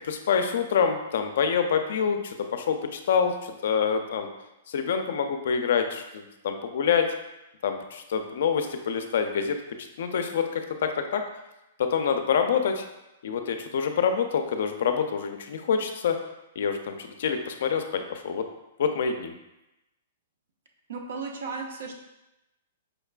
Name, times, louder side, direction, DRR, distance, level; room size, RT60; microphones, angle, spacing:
voice 1, 0.1-4.3 4.7-7.1 7.6-9.6 10.0-11.2 11.8-12.8 13.2-16.2 16.6-18.4 18.8-19.3, left 6 dB, 65° left, 6 dB, 0.4 m, -26 dB
voice 2, 20.9-21.9, right 4 dB, 75° right, 2 dB, 0.6 m, -35 dB
5.0 x 2.4 x 2.2 m, 0.94 s
hypercardioid pair, 160°, 0 cm